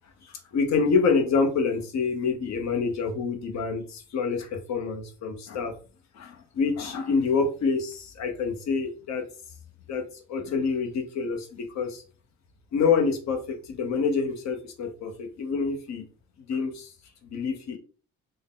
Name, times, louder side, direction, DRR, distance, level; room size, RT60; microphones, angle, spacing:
voice 1, 0.2-5.7 6.1-9.2 9.9-10.0 10.3-12.0 12.7-16.0 16.5-16.9 17.2-17.8, left 5 dB, 65° left, 4 dB, 0.9 m, -27 dB
3.6 x 2.2 x 3.6 m, 0.36 s
cardioid pair, 90°, 30 cm